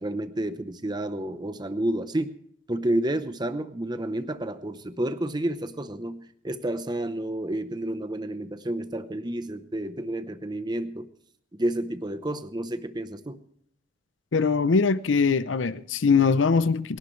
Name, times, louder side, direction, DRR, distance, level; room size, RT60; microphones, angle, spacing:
voice 1, 0.0-2.4 2.7-11.1 11.6-13.4, right 1 dB, 25° right, 0.8 m, -30 dB
voice 2, 14.3-17.0, left 5 dB, 85° left, 0.6 m, -22 dB
28.5 x 11.5 x 3.2 m
head